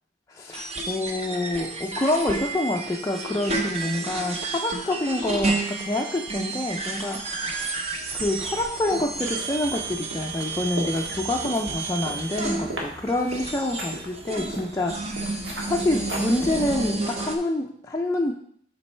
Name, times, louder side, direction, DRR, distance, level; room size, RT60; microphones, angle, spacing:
voice 1, 0.3-7.7 8.1-15.3 15.6-18.3, left 1 dB, 15° left, -1 dB, 0.4 m, -27 dB
sound 1, 0.5-17.4, right 3 dB, 35° right, 0.7 m, -31 dB
sound 2, 8.0-16.9, right 1 dB, 85° right, 1.6 m, -39 dB
7.2 x 5.2 x 3.3 m, 0.65 s
head